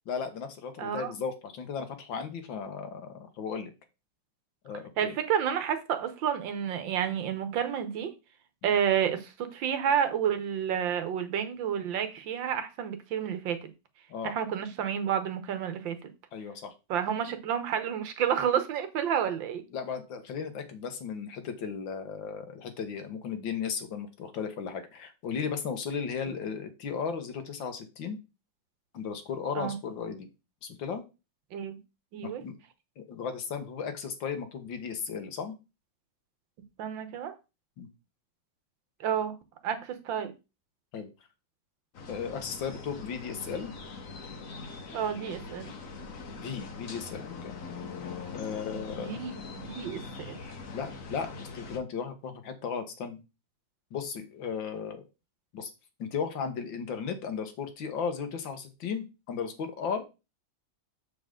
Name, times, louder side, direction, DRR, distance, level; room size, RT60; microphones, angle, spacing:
voice 1, 0.1-3.7 4.6-5.1 8.6-8.7 14.1-14.4 16.3-16.7 19.7-28.2 28.9-30.3 30.6-31.0 32.2-32.6 33.0-35.5 37.8-37.9 40.9-41.1 42.1-43.7 46.4-47.5 48.3-49.2 50.7-53.2 53.9-55.0 55.5-55.7 56.0-60.0, left 6 dB, 80° left, 7 dB, 2.0 m, -35 dB
voice 2, 0.8-1.2 5.0-8.1 8.6-13.7 14.2-16.1 16.9-19.6 29.6-29.8 31.5-31.8 32.1-32.4 36.8-37.3 39.0-39.4 39.6-40.3 44.9-45.7 48.7-50.0 50.3-50.4, right 8 dB, 80° right, 10 dB, 1.8 m, -30 dB
sound 1, 41.9-51.8, left 4 dB, 50° left, 1.3 m, -42 dB
7.0 x 6.7 x 3.8 m, 0.28 s
omnidirectional pair, 2.0 m